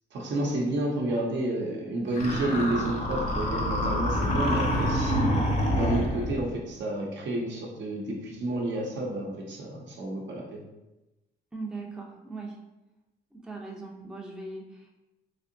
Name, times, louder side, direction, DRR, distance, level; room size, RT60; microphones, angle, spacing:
voice 1, 0.1-5.3 5.7-10.7, right 1 dB, 65° right, -1 dB, 0.8 m, -30 dB
sound 1, 2.2-6.5, equal, 35° left, 0.7 m, -27 dB
voice 2, 5.1-5.4 11.5-12.6 13.3-14.9, right 2 dB, 5° right, -1 dB, 0.5 m, -38 dB
3.3 x 2.7 x 2.6 m, 1.0 s
cardioid pair, 90°, 20 cm